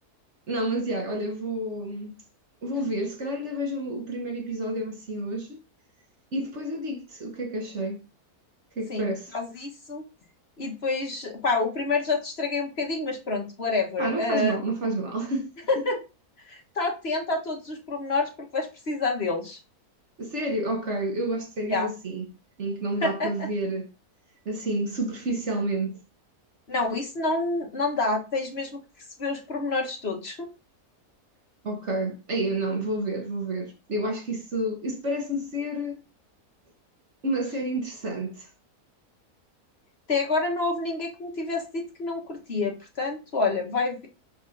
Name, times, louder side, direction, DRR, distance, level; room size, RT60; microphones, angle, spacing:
voice 1, 0.5-2.2 2.6-5.6 6.3-8.0 8.8-9.3 14.0-15.5 20.2-22.3 22.6-23.9 24.4-26.0 31.6-35.9 37.2-38.5, right 1 dB, 50° right, 1.3 m, -29 dB
voice 2, 8.9-10.0 10.6-14.6 15.7-16.0 16.5-19.6 21.7-21.9 23.0-23.5 26.7-28.8 29.2-30.5 40.1-44.1, left 3 dB, 45° left, 1.6 m, -28 dB
6.1 x 4.3 x 3.9 m
omnidirectional pair, 1.6 m